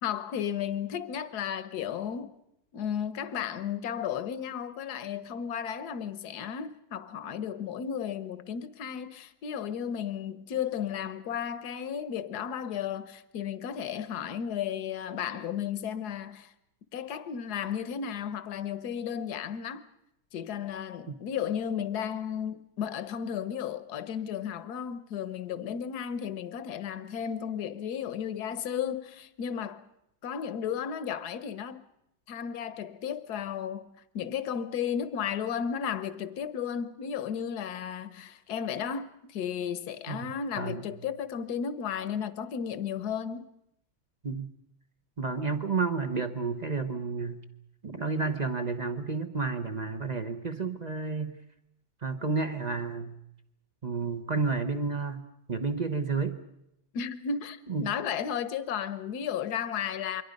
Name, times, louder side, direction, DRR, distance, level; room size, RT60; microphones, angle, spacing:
voice 1, 0.0-2.3 2.7-16.5 16.9-19.8 20.3-29.8 30.2-31.8 32.3-43.5 56.9-60.2, left 8 dB, 55° left, 1.4 m, -34 dB
voice 2, 40.1-40.8 44.2-44.5 45.2-47.4 47.8-51.4 52.0-53.1 53.8-56.4 57.7-57.9, right 4 dB, 35° right, 0.7 m, -31 dB
28.0 x 23.0 x 5.3 m
omnidirectional pair, 2.2 m